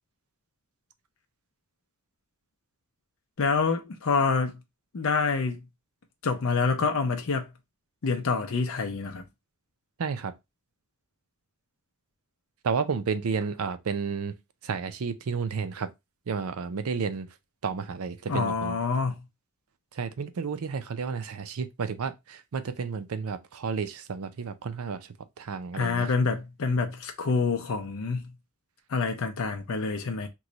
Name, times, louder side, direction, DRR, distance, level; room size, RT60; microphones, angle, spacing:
voice 1, 3.4-4.5 4.9-5.6 6.2-7.5 8.0-9.2 18.3-19.2 25.7-28.3 28.9-30.3, left 4 dB, 70° left, 0.6 m, -27 dB
voice 2, 10.0-10.3 12.6-14.3 14.6-15.9 16.3-17.3 17.6-18.8 20.0-25.0 25.4-26.1, right 5 dB, 80° right, 0.5 m, -31 dB
3.0 x 2.3 x 3.8 m
head